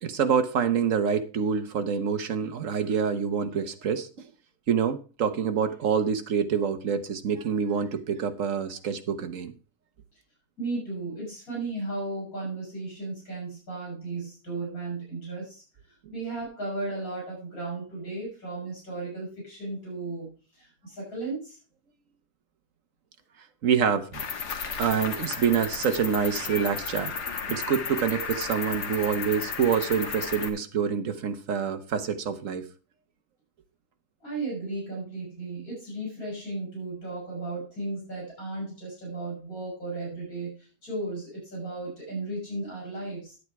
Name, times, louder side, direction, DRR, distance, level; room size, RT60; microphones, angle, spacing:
voice 1, 0.0-4.1 4.7-9.5 23.6-24.2 24.8-27.1 27.5-32.6, right 7 dB, 55° right, 1.4 m, -26 dB
voice 2, 10.6-15.6 16.1-21.6 34.2-43.4, right 2 dB, 60° left, 7.0 m, -35 dB
Cricket, 24.1-30.5, left 6 dB, 90° left, 1.9 m, -34 dB
9.8 x 8.5 x 4.7 m
omnidirectional pair, 1.7 m